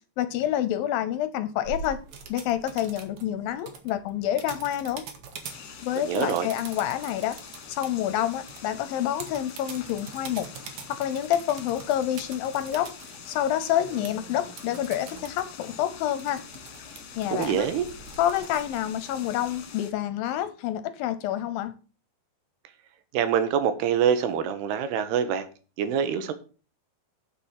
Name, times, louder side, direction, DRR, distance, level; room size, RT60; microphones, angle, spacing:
voice 1, 0.2-2.0 2.3-5.0 5.8-7.4 7.7-10.5 10.9-12.9 13.3-16.4 17.2-17.7 18.2-21.7, left 11 dB, 75° left, 2.3 m, -28 dB
sound 1, 1.6-19.6, right 5 dB, 60° right, 2.4 m, -45 dB
sound 2, 5.4-19.9, left 7 dB, 55° left, 2.2 m, -45 dB
voice 2, 6.0-6.5 17.3-17.9 23.1-25.5 25.8-26.3, right 8 dB, 85° right, 3.1 m, -25 dB
7.0 x 6.8 x 7.4 m
omnidirectional pair, 4.5 m